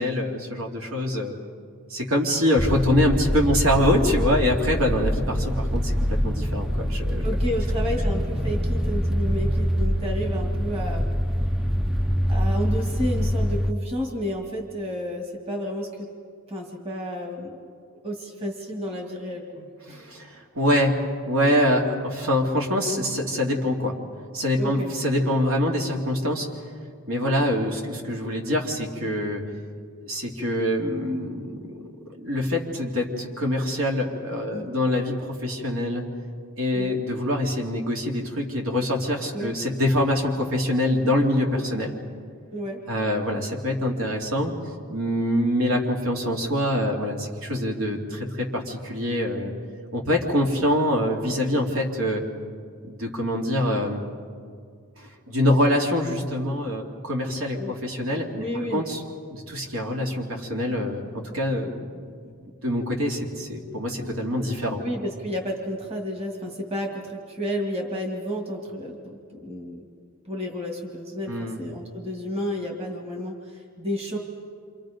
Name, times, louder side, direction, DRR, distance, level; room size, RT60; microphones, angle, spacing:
voice 1, 0.0-1.3 1.9-7.2 19.9-20.9 21.2-24.0 24.3-26.5 27.1-29.4 30.0-31.6 32.2-36.0 36.6-42.0 42.9-44.5 44.9-49.5 49.9-52.2 52.8-54.0 55.0-59.0 59.3-61.9 62.2-62.3 62.6-64.8 71.3-71.6, left 1 dB, 70° right, 0 dB, 2.9 m, -25 dB
sound 1, 2.6-13.7, equal, ahead, 0.5 m, -25 dB
voice 2, 7.2-11.1 12.3-16.1 16.5-17.6 18.0-20.0 24.6-24.9 34.5-34.7 36.7-36.9 39.3-39.5 42.5-42.8 57.5-57.7 58.3-58.8 64.8-69.9 70.2-74.2, equal, 25° right, 1 dB, 2.3 m, -31 dB
28.5 x 26.0 x 5.3 m, 2.1 s
head